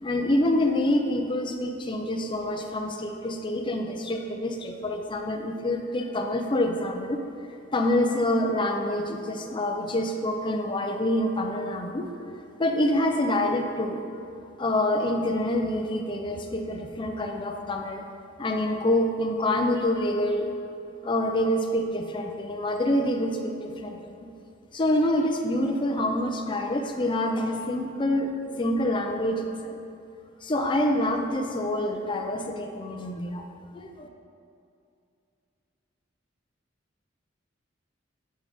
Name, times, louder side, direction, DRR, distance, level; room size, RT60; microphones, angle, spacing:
voice 1, 0.0-7.2 7.7-12.1 12.6-14.0 14.6-18.1 18.4-20.5 21.0-24.3 24.7-29.8 30.4-33.4 33.7-34.1, left 1 dB, 25° left, 4 dB, 0.5 m, -26 dB
8.9 x 3.3 x 5.0 m, 2.5 s
head